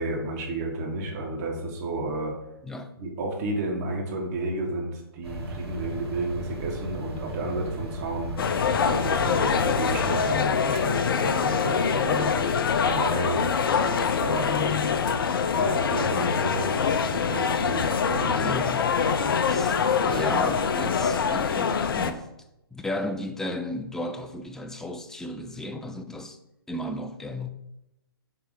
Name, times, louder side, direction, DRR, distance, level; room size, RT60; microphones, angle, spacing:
voice 1, 0.0-2.3 3.0-8.3 8.8-12.3 12.8-13.4 14.2-15.0 15.6-18.5 18.9-19.3 20.1-20.3, right 1 dB, 40° right, 1.7 m, -31 dB
sound 1, 5.2-10.4, right 2 dB, 85° right, 2.2 m, -36 dB
sound 2, 8.4-22.1, left 6 dB, 60° left, 0.7 m, -24 dB
voice 2, 18.4-18.9 19.4-19.8 20.1-22.3 22.7-26.4 26.7-27.5, left 1 dB, 5° left, 0.4 m, -34 dB
7.1 x 3.4 x 5.1 m
hypercardioid pair, 130°, 13 cm